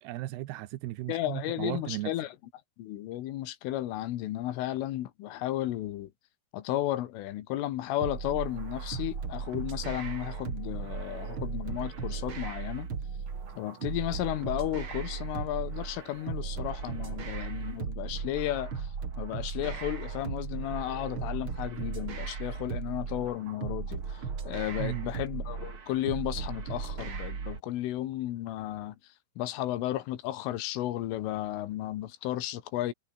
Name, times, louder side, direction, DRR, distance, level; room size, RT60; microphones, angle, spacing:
voice 1, 0.0-2.1 24.8-25.1, right 16 dB, 75° right, 2.5 m, -36 dB
voice 2, 1.1-2.3 2.8-6.1 6.5-12.9 13.6-18.9 19.2-29.0 29.4-32.9, left 14 dB, 85° left, 4.1 m, -33 dB
sound 1, 8.0-27.6, right 5 dB, 35° right, 2.6 m, -36 dB
omnidirectional pair, 5.7 m